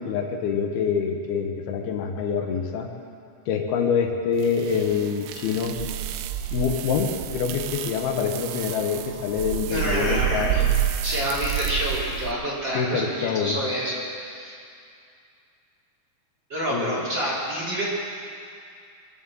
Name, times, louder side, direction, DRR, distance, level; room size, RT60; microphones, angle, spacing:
voice 1, 0.0-2.9 3.5-5.8 6.5-10.7 12.7-13.6 16.7-17.0, left 6 dB, 80° left, 4 dB, 3.0 m, -26 dB
sound 1, 4.4-12.3, right 11 dB, 80° right, 2.1 m, -29 dB
voice 2, 9.7-10.7 11.0-14.6 16.5-17.8, equal, 30° right, -7 dB, 3.2 m, -28 dB
22.5 x 7.6 x 7.5 m, 2.4 s
omnidirectional pair, 4.5 m